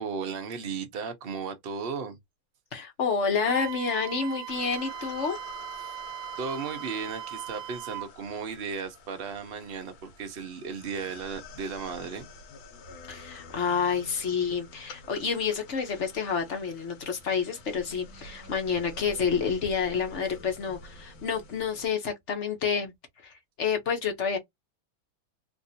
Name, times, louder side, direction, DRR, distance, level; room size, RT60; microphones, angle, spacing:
voice 1, 0.0-2.2 5.8-5.9 6.4-12.3, right 5 dB, 50° right, 0.7 m, -35 dB
voice 2, 2.7-5.4 13.1-22.9 23.2-24.4, left 6 dB, 50° left, 0.9 m, -29 dB
Wind instrument woodwind instrument, 3.4-8.1, right 12 dB, 85° right, 1.4 m, -39 dB
sound 1, 4.5-21.9, left 3 dB, 90° left, 1.7 m, -48 dB
3.6 x 2.6 x 2.7 m
omnidirectional pair, 2.1 m